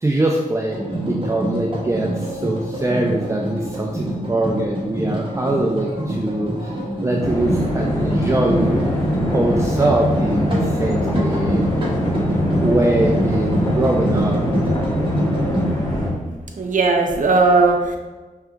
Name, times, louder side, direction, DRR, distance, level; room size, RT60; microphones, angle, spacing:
voice 1, 0.0-6.8 7.0-8.8 9.3-11.7 12.6-14.4, right 2 dB, 20° right, -1 dB, 0.5 m, -22 dB
sound 1, 0.7-15.6, right 1 dB, 35° right, 1.2 m, -25 dB
sound 2, 7.2-16.1, left 1 dB, 25° left, 1.2 m, -23 dB
sound 3, 8.6-16.0, left 1 dB, 40° left, 0.8 m, -31 dB
voice 2, 16.5-18.0, right 3 dB, 65° right, 3 dB, 0.7 m, -17 dB
5.5 x 3.4 x 2.3 m, 1.3 s
cardioid pair, 55°, 15 cm